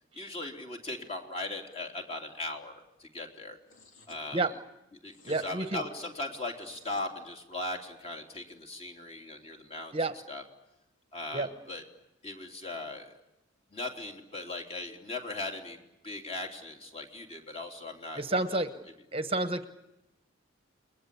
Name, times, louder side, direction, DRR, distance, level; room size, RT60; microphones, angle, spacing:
voice 1, 0.2-2.7 3.0-3.6 4.1-4.4 5.0-10.0 10.3-10.4 11.1-11.8 12.2-13.1 13.7-15.8 16.0-18.6, left 2 dB, 30° left, 2 dB, 3.4 m, -39 dB
sound 1, 3.7-4.2 5.1-5.6 6.5-7.1, left 3 dB, 75° left, 3.1 m, -55 dB
voice 2, 5.2-5.8 9.9-10.1 11.3-11.5 18.2-18.7 19.1-19.7, right 2 dB, 30° right, 9 dB, 1.1 m, -30 dB
30.0 x 21.5 x 8.5 m, 0.90 s
head